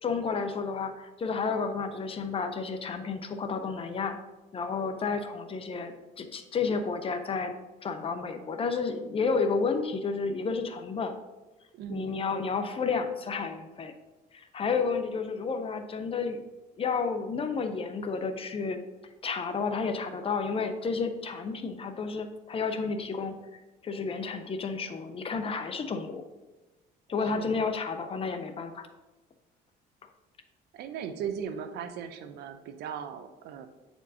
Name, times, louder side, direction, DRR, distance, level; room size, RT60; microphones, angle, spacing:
voice 1, 0.0-4.2 4.5-7.5 7.8-11.1 11.9-13.9 14.3-16.4 16.8-18.8 19.2-23.3 23.8-26.2 27.1-28.9, left 5 dB, 35° left, 7 dB, 0.6 m, -31 dB
voice 2, 11.7-12.2 27.2-27.6 30.7-33.7, right 7 dB, 75° right, 9 dB, 0.6 m, -38 dB
8.4 x 4.4 x 2.7 m, 1.1 s
cardioid pair, 110°, 17 cm